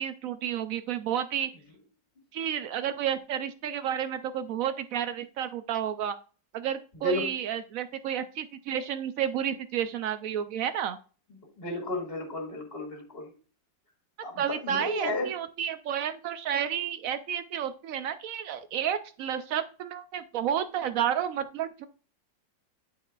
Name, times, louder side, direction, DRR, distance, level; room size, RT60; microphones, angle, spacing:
voice 1, 0.0-1.5 2.3-6.2 6.5-11.0 14.4-21.9, right 9 dB, 85° right, 11 dB, 0.7 m, -31 dB
voice 2, 11.6-13.3 14.2-15.3, left 2 dB, 30° left, 0 dB, 2.3 m, -33 dB
12.0 x 4.8 x 2.4 m, 0.37 s
omnidirectional pair, 2.0 m